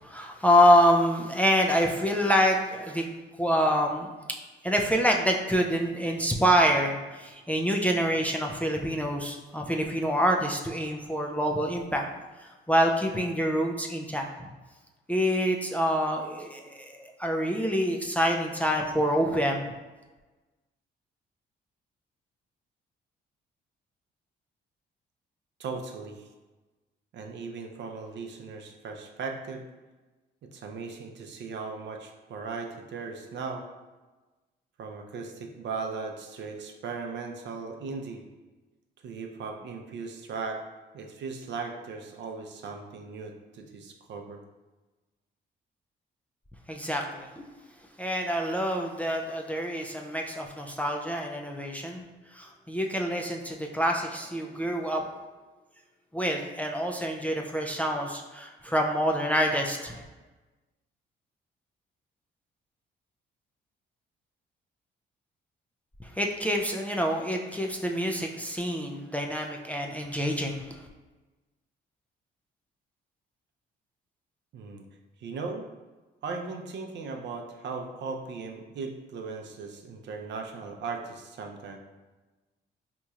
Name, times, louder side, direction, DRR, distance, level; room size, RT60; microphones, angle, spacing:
voice 1, 0.0-3.1 3.4-4.1 4.6-12.0 12.4-14.5 15.1-19.7 46.7-47.5 48.0-52.0 52.3-55.0 56.1-60.0 66.0-70.8, equal, 5° left, 1 dB, 0.3 m, -26 dB
voice 2, 25.6-26.3 27.1-29.6 30.5-33.7 34.8-38.2 39.0-40.6 40.9-44.4 74.5-74.8 75.2-75.6 76.2-81.8, right 4 dB, 65° right, 3 dB, 0.6 m, -37 dB
4.0 x 2.9 x 2.4 m, 1.2 s
cardioid pair, 90°, 20 cm